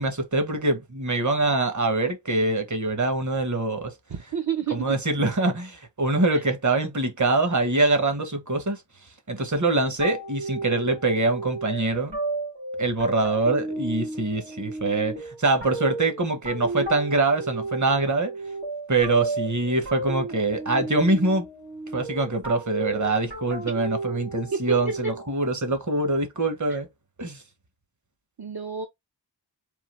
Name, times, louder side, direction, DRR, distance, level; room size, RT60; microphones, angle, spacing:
voice 1, 0.0-3.9 4.7-8.8 9.3-12.2 12.8-18.3 18.9-21.4 21.9-26.9 27.2-27.4, right 2 dB, 45° right, 1.0 m, -24 dB
voice 2, 4.1-4.9 5.2-5.3 6.3-6.4 24.5-24.8 26.7-26.8 28.4-28.9, right 6 dB, 60° right, 0.7 m, -29 dB
sound 1, 10.0-25.4, right 2 dB, 90° right, 1.9 m, -33 dB
3.7 x 2.7 x 3.1 m
wide cardioid pair, 45°, 43 cm